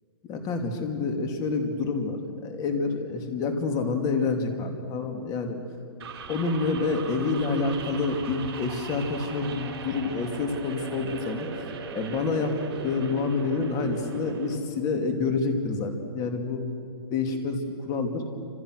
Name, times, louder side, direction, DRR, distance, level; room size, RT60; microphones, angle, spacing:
voice 1, 0.3-5.6 6.3-11.5 11.9-12.5 12.8-16.6 17.1-18.2, left 4 dB, 25° left, 5 dB, 2.7 m, -28 dB
sound 1, 6.0-14.6, right 6 dB, 55° right, 4.4 m, -39 dB
28.5 x 26.5 x 6.5 m, 2.5 s
hypercardioid pair, 155°, 14 cm